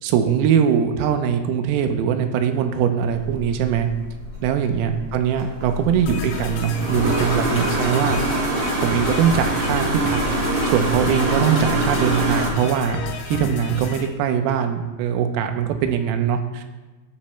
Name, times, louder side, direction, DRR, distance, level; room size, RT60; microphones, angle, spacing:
voice 1, 0.0-3.9 4.4-8.2 8.8-10.2 10.7-13.0 13.3-16.6, right 8 dB, 90° right, 6 dB, 3.5 m, -21 dB
sound 1, 3.0-12.5, right 1 dB, 55° right, 2.5 m, -25 dB
sound 2, 6.1-14.1, left 5 dB, 70° left, 2.6 m, -32 dB
18.5 x 7.3 x 2.2 m, 1.2 s
omnidirectional pair, 5.9 m